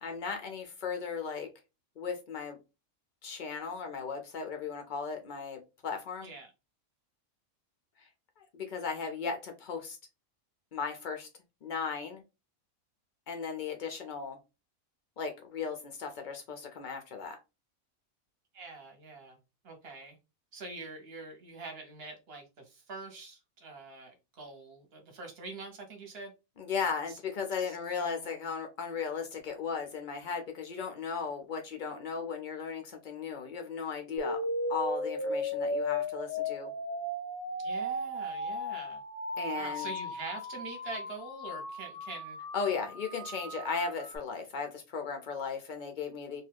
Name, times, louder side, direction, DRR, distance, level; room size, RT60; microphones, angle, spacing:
voice 1, 0.0-1.5 2.0-2.6 3.2-6.3 8.4-10.0 10.7-11.3 11.6-12.2 13.3-14.4 15.2-17.4 26.6-34.4 34.7-36.7 39.4-39.9 42.5-46.4, left 5 dB, 80° left, 0.4 m, -36 dB
voice 2, 18.5-19.4 19.6-20.2 20.5-26.3 27.1-27.2 27.6-28.5 37.6-39.0 39.5-42.4, right 3 dB, 50° right, 1.0 m, -45 dB
sound 1, 34.2-44.2, left 1 dB, 10° right, 0.6 m, -36 dB
2.7 x 2.2 x 3.3 m
omnidirectional pair, 1.5 m